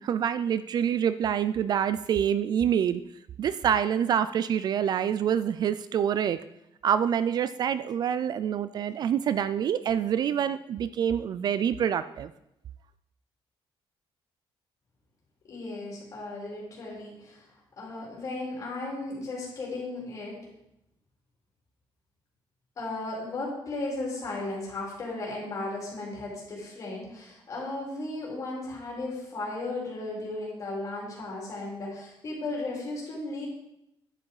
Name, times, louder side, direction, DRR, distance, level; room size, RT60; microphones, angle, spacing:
voice 1, 0.0-3.0 3.4-6.4 6.8-12.3, right 9 dB, 45° right, 14 dB, 0.4 m, -26 dB
voice 2, 15.5-17.4 17.8-20.4 22.8-33.5, left 2 dB, 35° left, -4 dB, 4.1 m, -35 dB
11.0 x 7.5 x 4.8 m, 0.81 s
cardioid pair, 170°, 10 cm